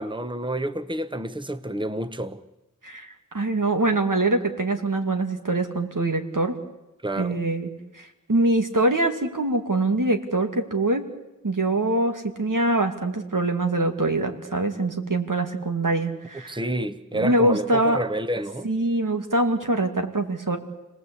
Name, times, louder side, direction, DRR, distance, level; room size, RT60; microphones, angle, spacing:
voice 1, 0.0-2.4 7.0-7.4 16.5-18.7, right 1 dB, 15° right, 11 dB, 1.1 m, -29 dB
voice 2, 2.8-6.6 7.2-7.7 8.0-11.0 11.4-16.6 17.1-18.0 18.6-20.6, right 2 dB, 75° right, 5 dB, 2.4 m, -24 dB
29.5 x 19.0 x 8.3 m, 0.98 s
wide cardioid pair, 40°, 32 cm